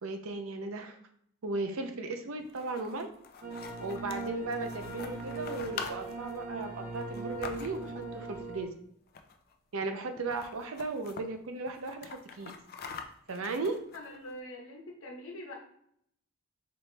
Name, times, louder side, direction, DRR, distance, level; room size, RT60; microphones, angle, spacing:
voice 1, 0.0-1.0 1.4-3.1 3.8-8.7 9.7-12.5 13.3-13.8, right 3 dB, 85° right, 6 dB, 0.6 m, -36 dB
sound 1, 2.4-8.0 9.1-9.5 9.8-9.9 10.2-11.2 11.7-14.3, left 5 dB, 45° left, 0.4 m, -45 dB
sound 2, 3.4-8.6, right 2 dB, 40° right, 0.7 m, -40 dB
voice 2, 13.9-15.5, left 1 dB, 70° left, 0 dB, 1.0 m, -44 dB
4.2 x 3.1 x 3.3 m, 0.69 s
head